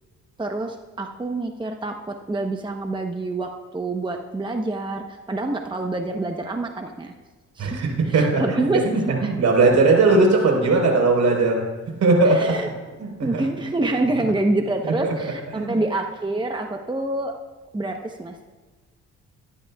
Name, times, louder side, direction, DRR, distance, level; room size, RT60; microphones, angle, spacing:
voice 1, 0.4-7.1 7.6-7.8 8.1-8.8 9.2-9.4 12.3-12.7 13.2-17.3 17.7-18.5, right 2 dB, 15° right, 4 dB, 1.0 m, -27 dB
voice 2, 7.6-11.6 12.0-12.5 13.0-13.4 14.8-15.8, right 3 dB, 65° right, 1 dB, 4.3 m, -19 dB
23.5 x 11.5 x 2.4 m, 1.3 s
cardioid pair, 90°, 30 cm